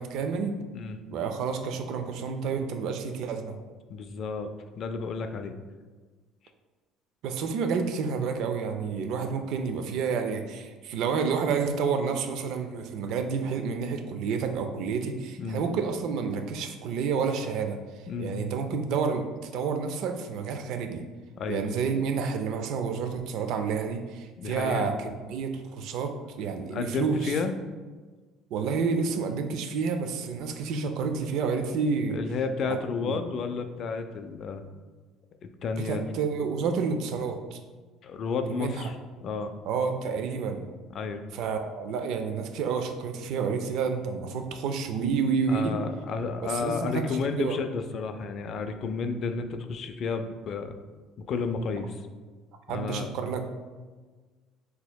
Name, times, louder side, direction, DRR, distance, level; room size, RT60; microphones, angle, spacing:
voice 1, 0.0-0.6 1.1-3.5 7.2-17.8 18.2-21.0 21.5-27.3 28.5-32.2 32.7-33.2 35.8-37.6 38.5-38.9 39.7-40.7 41.3-45.8 46.4-47.0 47.3-47.6 52.7-53.4, right 5 dB, 70° right, 6 dB, 0.3 m, -29 dB
voice 2, 3.9-4.5 4.8-5.5 15.4-15.6 18.1-18.3 21.4-21.6 24.4-24.9 26.7-27.5 32.1-34.6 35.4-36.1 38.0-39.0 39.2-39.5 40.9-41.2 45.5-50.8 51.2-52.0 52.7-53.1, left 4 dB, 50° left, 7 dB, 0.3 m, -31 dB
4.1 x 2.8 x 2.2 m, 1.4 s
supercardioid pair, 95°, 0 cm